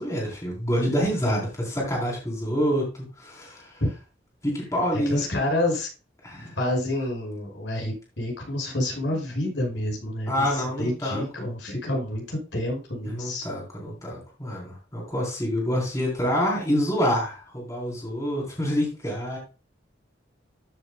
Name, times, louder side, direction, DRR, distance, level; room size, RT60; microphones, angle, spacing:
voice 1, 0.0-3.8 4.4-5.2 6.2-6.6 10.3-11.5 13.1-19.4, equal, 15° left, -3 dB, 3.6 m, -27 dB
voice 2, 4.9-5.9 6.6-13.4, left 1 dB, 85° left, 0 dB, 5.7 m, -28 dB
13.5 x 7.6 x 2.2 m, 0.32 s
head